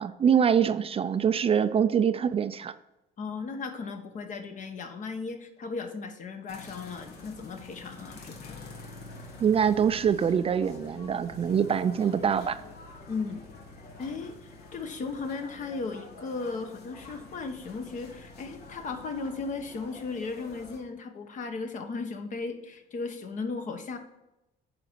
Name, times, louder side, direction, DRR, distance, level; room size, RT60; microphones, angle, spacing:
voice 1, 0.0-2.7 9.4-12.6, right 7 dB, 35° right, 12 dB, 0.4 m, -24 dB
voice 2, 3.2-8.6 13.1-13.4 13.8-24.0, left 4 dB, 50° left, 6 dB, 1.2 m, -36 dB
sound 1, 6.5-20.8, left 3 dB, 70° left, 1.7 m, -47 dB
10.0 x 5.2 x 4.6 m, 0.95 s
cardioid pair, 110°, 17 cm